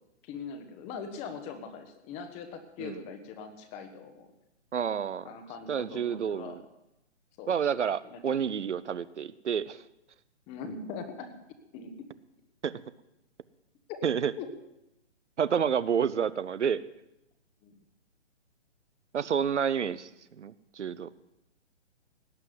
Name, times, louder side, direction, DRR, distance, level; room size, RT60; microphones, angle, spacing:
voice 1, 0.2-4.3 5.2-6.6 7.4-7.5 8.0-8.4 10.5-11.3 11.7-12.1 13.9-14.0 14.4-14.5 17.6-17.7, left 5 dB, 15° left, 7 dB, 1.2 m, -41 dB
voice 2, 4.7-5.3 5.7-6.6 7.5-9.8 12.6-12.7 14.0-14.3 15.4-16.8 19.1-20.1 20.4-21.1, right 7 dB, 75° right, 17 dB, 0.8 m, -29 dB
18.0 x 6.1 x 9.6 m, 0.88 s
hypercardioid pair, 145°, 36 cm